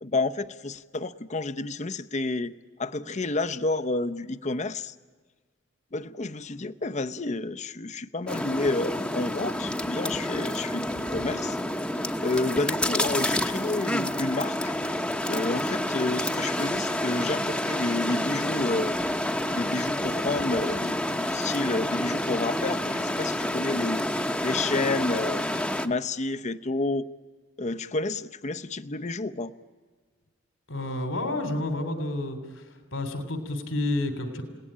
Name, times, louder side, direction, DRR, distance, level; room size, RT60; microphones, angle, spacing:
voice 1, 0.0-2.5 2.8-4.9 5.9-11.6 12.2-15.0 15.3-18.9 19.5-24.1 24.4-25.4 25.8-27.1 27.6-29.5, left 2 dB, 35° left, 10 dB, 0.8 m, -30 dB
sound 1, 8.3-25.9, left 1 dB, 5° left, 1.0 m, -29 dB
voice 2, 30.7-32.7 32.9-34.4, left 1 dB, 85° left, 8 dB, 3.2 m, -30 dB
29.5 x 18.5 x 10.0 m, 1.5 s
head